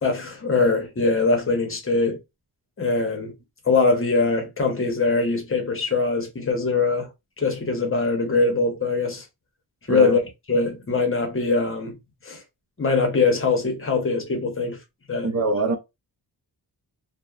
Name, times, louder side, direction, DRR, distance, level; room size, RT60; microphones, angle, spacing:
voice 1, 0.0-2.2 2.8-3.3 3.6-7.1 7.4-9.3 9.9-10.2 10.5-12.0 12.2-12.4 12.8-14.8 15.1-15.3, left 3 dB, 35° left, 0.7 m, -22 dB
voice 2, 15.2-15.8, right 3 dB, 45° right, 0.5 m, -23 dB
2.8 x 2.1 x 2.3 m
wide cardioid pair, 160°, 40 cm